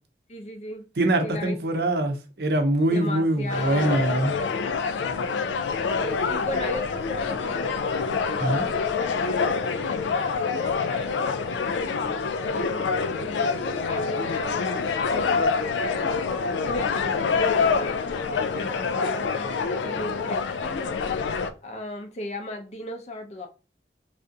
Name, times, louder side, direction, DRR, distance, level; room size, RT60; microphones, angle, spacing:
voice 1, 0.3-0.8 1.2-1.6 2.9-4.0 5.9-7.8 8.2-21.0 21.3-23.5, left 1 dB, 40° left, 0.5 m, -36 dB
voice 2, 1.0-4.3 8.4-8.7, right 1 dB, 65° right, 0.6 m, -23 dB
sound 1, 3.5-21.5, left 5 dB, 90° left, 0.3 m, -26 dB
3.4 x 2.5 x 2.6 m
head